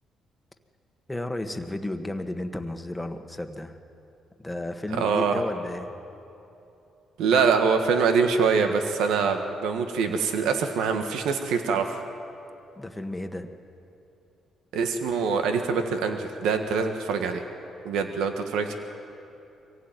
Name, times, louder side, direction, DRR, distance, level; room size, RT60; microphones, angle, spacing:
voice 1, 1.1-3.8 4.4-5.9 12.8-13.5, left 1 dB, 10° left, 6 dB, 1.6 m, -33 dB
voice 2, 4.9-5.4 7.2-12.0 14.7-17.4 17.8-18.7, right 5 dB, 90° right, 6 dB, 1.5 m, -24 dB
24.0 x 16.5 x 9.2 m, 2.9 s
cardioid pair, 90°, 0 cm